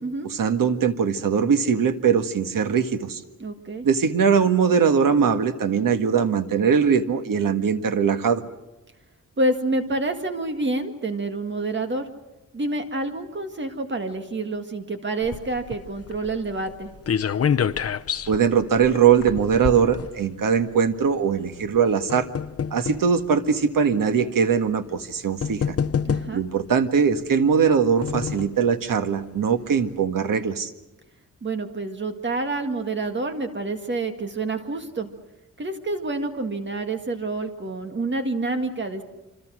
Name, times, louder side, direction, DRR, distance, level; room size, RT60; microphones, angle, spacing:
voice 1, 0.3-3.2 3.8-8.4 18.3-22.3 22.7-25.8 26.3-30.7, right 6 dB, 85° right, 8 dB, 1.8 m, -21 dB
voice 2, 3.4-3.9 9.4-12.1 12.5-16.9 26.0-26.4 31.4-35.1 35.6-39.0, right 2 dB, 35° right, 6 dB, 1.9 m, -28 dB
sound 1, 15.2-20.7 21.5-23.1 23.9-24.0 25.0-25.1 25.4-26.6 27.5-28.6 29.1-29.2 29.4-29.5, left 7 dB, 45° left, 0.8 m, -28 dB
26.5 x 26.5 x 6.3 m, 1.0 s
wide cardioid pair, 170°, 32 cm